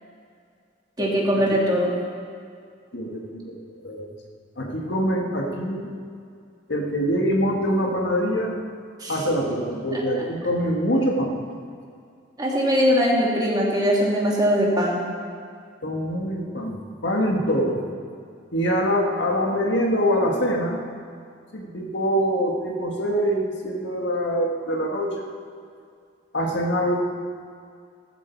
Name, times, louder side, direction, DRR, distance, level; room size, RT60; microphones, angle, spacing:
voice 1, 1.0-1.9 9.0-9.2 9.9-10.0 12.4-15.0, equal, 20° right, -4 dB, 2.5 m, -21 dB
voice 2, 2.9-3.6 3.8-4.1 4.6-5.9 6.7-8.6 9.1-11.4 15.8-17.8 18.5-20.8 21.5-25.3 26.3-26.9, equal, 65° left, 0 dB, 1.8 m, -24 dB
15.5 x 14.0 x 4.6 m, 2.3 s
head